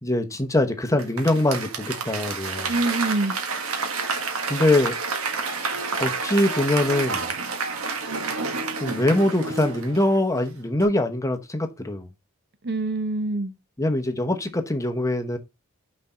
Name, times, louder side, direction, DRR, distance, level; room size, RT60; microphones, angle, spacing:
voice 1, 0.0-2.7 4.5-4.9 6.0-7.3 8.8-12.1 13.8-15.4, left 1 dB, 15° left, 0.9 m, -23 dB
Applause / Crowd, 1.0-10.4 10.8-10.9, right 4 dB, 70° right, 1.6 m, -29 dB
voice 2, 2.7-3.4 12.6-13.5, right 2 dB, 50° right, 0.7 m, -25 dB
6.1 x 4.3 x 5.7 m
head